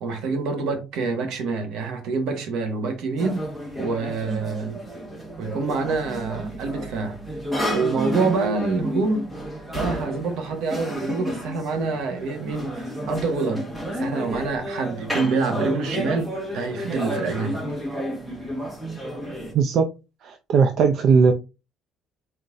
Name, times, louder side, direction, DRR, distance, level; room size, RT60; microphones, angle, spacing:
voice 1, 0.0-3.4 3.8-4.8 5.4-7.2 7.7-9.3 9.7-13.7 14.0-17.6, right 4 dB, 70° right, 1.3 m, -26 dB
sound 1, 3.2-19.5, equal, 10° right, 1.4 m, -31 dB
voice 2, 19.5-19.9 20.2-21.3, right 5 dB, 45° right, 0.4 m, -18 dB
4.2 x 3.9 x 2.5 m
cardioid pair, 175°, 0 cm